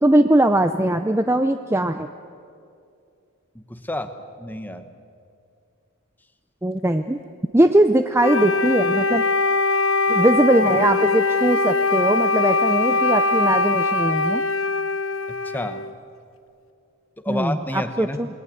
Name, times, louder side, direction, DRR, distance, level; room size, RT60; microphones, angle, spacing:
voice 1, 0.0-2.1 6.6-7.2 7.5-9.2 10.1-14.4 17.3-18.3, right 1 dB, 10° right, 8 dB, 0.5 m, -20 dB
voice 2, 3.5-4.9 15.3-15.8 17.2-18.2, left 1 dB, 10° left, 8 dB, 1.2 m, -30 dB
Wind instrument woodwind instrument, 8.2-15.9, left 3 dB, 60° left, 0.9 m, -21 dB
28.0 x 20.5 x 8.5 m, 2.5 s
head